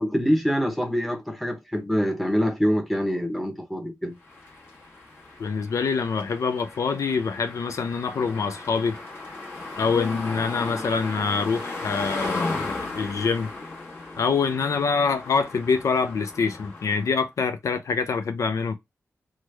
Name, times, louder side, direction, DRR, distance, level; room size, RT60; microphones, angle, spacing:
voice 1, 0.0-4.1, equal, ahead, 0.8 m, -25 dB
sound 1, 4.2-17.2, left 3 dB, 45° left, 1.2 m, -36 dB
voice 2, 5.4-9.0 9.8-13.5 14.2-18.7, left 5 dB, 70° left, 0.4 m, -25 dB
3.1 x 2.2 x 3.2 m
wide cardioid pair, 95°, 6 cm